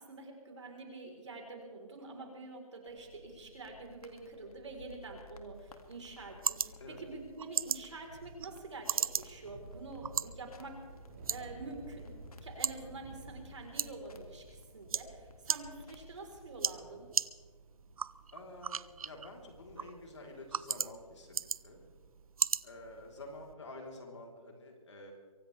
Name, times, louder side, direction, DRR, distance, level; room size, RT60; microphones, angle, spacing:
voice 1, 0.0-10.8 11.3-12.1 12.4-17.1, right 3 dB, 55° right, 2 dB, 3.9 m, -47 dB
sound 1, 2.9-16.9, left 2 dB, 90° left, 2.1 m, -57 dB
sound 2, 5.5-23.5, right 6 dB, 75° right, 0.5 m, -39 dB
sound 3, 8.0-23.8, right 1 dB, 25° right, 5.1 m, -55 dB
voice 2, 18.3-21.8 22.6-25.1, left 2 dB, 50° left, 0 dB, 3.6 m, -49 dB
24.0 x 17.0 x 3.4 m, 1.6 s
hypercardioid pair, 175°, 18 cm